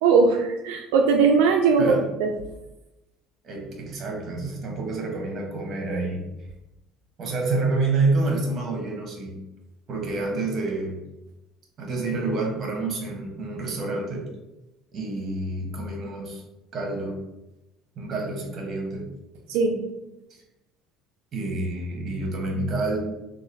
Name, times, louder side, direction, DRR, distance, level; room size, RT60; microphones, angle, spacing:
voice 1, 0.0-2.3 19.5-19.8, right 5 dB, 90° right, 2 dB, 0.3 m, -20 dB
voice 2, 3.4-6.2 7.2-9.4 9.9-11.0 11.8-14.2 14.9-16.4 16.7-17.2 18.0-19.1 21.3-23.0, right 3 dB, 40° right, 1 dB, 1.1 m, -28 dB
3.0 x 2.4 x 3.9 m, 0.96 s
supercardioid pair, 110°, 0 cm